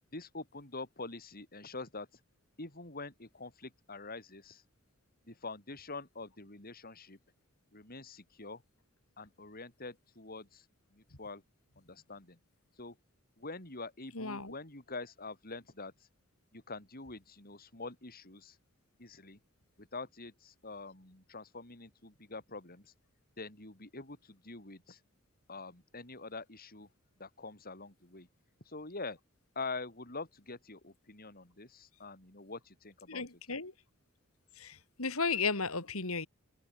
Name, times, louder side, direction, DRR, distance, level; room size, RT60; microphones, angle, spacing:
voice 1, 0.1-2.1 2.6-4.6 5.3-7.2 7.7-8.6 9.2-10.6 10.9-11.4 11.8-12.4 12.8-13.0 13.4-15.9 16.5-18.6 19.0-19.4 19.8-22.9 23.4-25.0 25.5-26.9 27.2-28.3 28.6-29.2 29.5-33.2, left 3 dB, 45° left, 6.4 m, -45 dB
voice 2, 14.1-14.5 33.1-33.7 34.6-36.3, left 4 dB, 90° left, 3.9 m, -34 dB
head